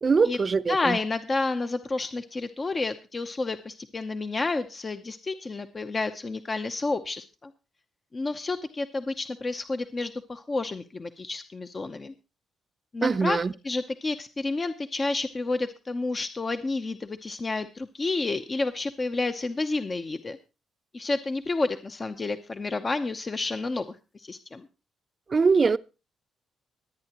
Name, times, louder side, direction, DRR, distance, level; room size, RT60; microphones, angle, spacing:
voice 1, 0.0-1.0 13.0-13.5 25.3-25.8, right 4 dB, 35° right, 0.6 m, -22 dB
voice 2, 0.7-7.5 8.1-12.1 12.9-13.4 13.6-20.4 20.9-24.7, left 3 dB, 30° left, 0.7 m, -30 dB
24.0 x 8.8 x 3.0 m
cardioid pair, 90°, 0 cm